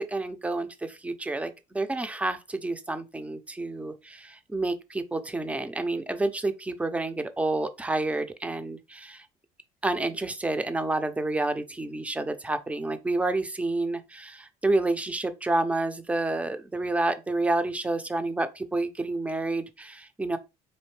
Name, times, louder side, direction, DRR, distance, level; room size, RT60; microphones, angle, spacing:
voice 1, 0.0-9.2 9.8-20.4, right 2 dB, 10° right, 0.5 m, -29 dB
4.2 x 2.7 x 3.1 m
cardioid pair, 115°, 14 cm